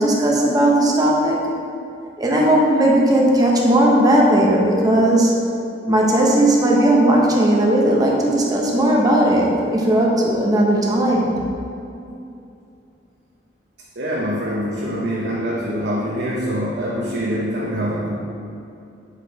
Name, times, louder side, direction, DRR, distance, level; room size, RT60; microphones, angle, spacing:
voice 1, 0.0-1.4 2.2-5.3 5.9-11.4, right 1 dB, 20° right, -3 dB, 0.9 m, -16 dB
voice 2, 14.0-18.2, equal, 65° right, -5 dB, 0.8 m, -24 dB
6.7 x 4.9 x 4.0 m, 2.6 s
head